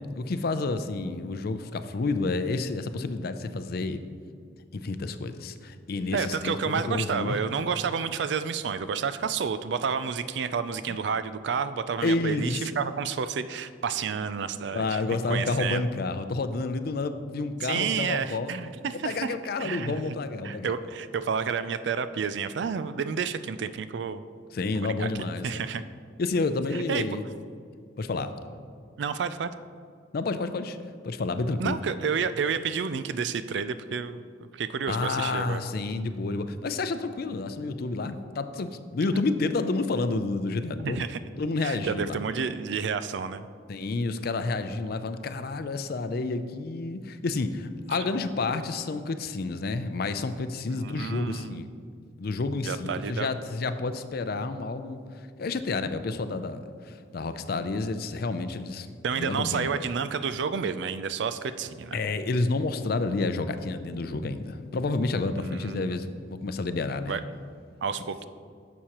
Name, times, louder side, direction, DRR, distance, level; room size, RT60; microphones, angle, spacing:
voice 1, 0.2-4.0 4.7-7.4 10.9-11.0 12.0-12.7 14.7-20.7 24.5-25.7 26.2-27.3 28.0-28.3 30.1-30.8 31.0-31.8 34.9-41.0 41.4-42.2 43.7-51.6 52.2-55.0 55.4-58.9 59.2-59.8 61.9-67.2, left 3 dB, 55° left, 10 dB, 0.4 m, -30 dB
voice 2, 6.1-15.0 15.3-15.9 17.6-20.2 20.4-24.2 24.7-25.1 25.4-25.8 26.7-27.0 29.0-29.5 31.6-34.2 34.5-35.6 40.8-41.2 41.6-43.5 50.7-51.7 52.6-53.3 59.0-62.0 65.4-66.0 67.1-67.2 67.8-68.2, right 6 dB, 65° right, 12 dB, 0.4 m, -30 dB
11.0 x 7.2 x 3.0 m, 2.2 s
head